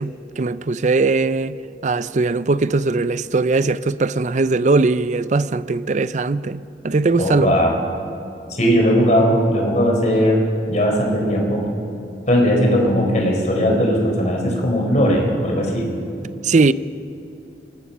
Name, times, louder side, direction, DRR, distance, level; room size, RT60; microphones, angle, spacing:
voice 1, 0.0-1.6 1.8-7.6 16.4-16.7, right 3 dB, 40° right, 0.5 m, -19 dB
voice 2, 7.2-7.7 8.5-11.6 12.3-15.9, equal, 40° left, 4.2 m, -18 dB
24.5 x 19.5 x 5.6 m
head